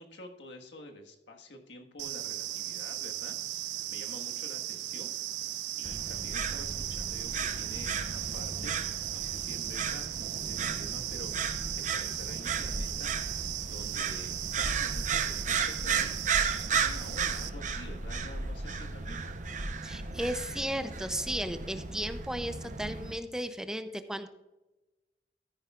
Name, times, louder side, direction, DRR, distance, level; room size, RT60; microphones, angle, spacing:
voice 1, 0.0-5.1 5.4-5.5 5.8-8.8 9.1-13.2 13.6-16.1 16.5-19.4, left 1 dB, 90° left, 3 dB, 1.5 m, -48 dB
sound 1, 2.0-17.5, right 13 dB, 85° right, 0.6 m, -37 dB
sound 2, 5.8-23.2, right 5 dB, 45° right, 0.8 m, -34 dB
voice 2, 19.8-24.3, equal, 5° right, 10 dB, 0.5 m, -35 dB
13.5 x 10.0 x 2.4 m, 1.1 s
head